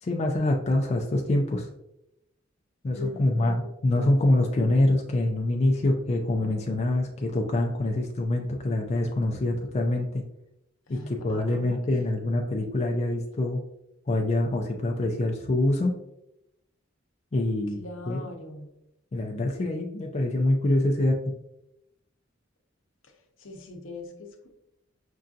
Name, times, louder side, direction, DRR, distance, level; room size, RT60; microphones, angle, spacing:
voice 1, 0.0-1.7 2.8-10.2 10.9-13.6 14.1-15.9 17.3-17.8 18.1-18.2 19.1-21.3, left 1 dB, 35° left, 1 dB, 0.4 m, -25 dB
voice 2, 2.9-3.7 10.9-11.6 17.7-18.7 23.4-24.5, left 2 dB, 75° left, 3 dB, 0.7 m, -41 dB
5.4 x 2.6 x 2.4 m, 0.83 s
head